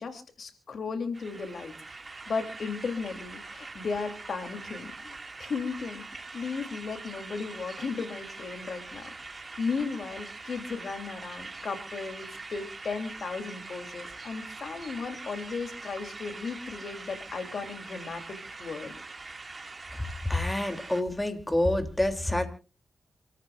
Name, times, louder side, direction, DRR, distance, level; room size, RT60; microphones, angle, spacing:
voice 1, 0.0-1.7 2.3-6.0 6.3-9.1 9.6-19.0, left 4 dB, 65° left, 6 dB, 3.2 m, -35 dB
sound 1, 1.1-21.0, right 3 dB, 35° right, 2.3 m, -43 dB
voice 2, 20.3-22.5, left 1 dB, 10° left, 6 dB, 3.1 m, -27 dB
28.0 x 14.0 x 2.6 m, 0.35 s
cardioid pair, 65°, 0 cm